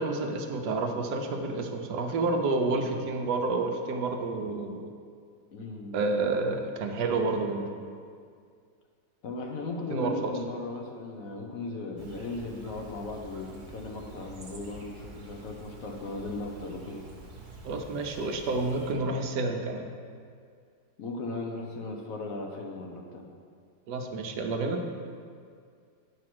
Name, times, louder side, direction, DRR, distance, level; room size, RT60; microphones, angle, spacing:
voice 1, 0.0-4.9 5.9-7.7 9.9-10.3 17.6-19.9 23.9-24.8, right 3 dB, 75° right, 4 dB, 1.3 m, -29 dB
voice 2, 5.5-6.0 9.2-17.1 21.0-23.3, left 2 dB, 60° left, 2 dB, 1.1 m, -37 dB
Chirp tweet, 12.0-18.9, right 2 dB, 45° right, 1.5 m, -47 dB
9.4 x 4.9 x 6.0 m, 2.2 s
omnidirectional pair, 1.9 m